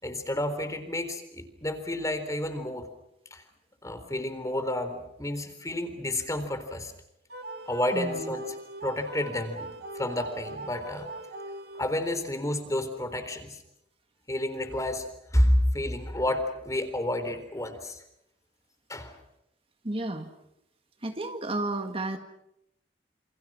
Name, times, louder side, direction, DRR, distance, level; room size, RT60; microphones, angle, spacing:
voice 1, 0.0-2.9 3.3-3.4 3.8-6.9 7.7-8.6 8.8-11.1 11.8-13.6 14.3-18.0 18.9-19.1, left 1 dB, 20° left, 9 dB, 3.9 m, -30 dB
sound 1, 7.3-12.2, right 1 dB, 60° right, 3.1 m, -40 dB
voice 2, 7.9-8.3 19.8-20.3 21.0-22.2, right 2 dB, 30° right, 6 dB, 1.9 m, -32 dB
28.5 x 28.0 x 6.3 m, 0.80 s
head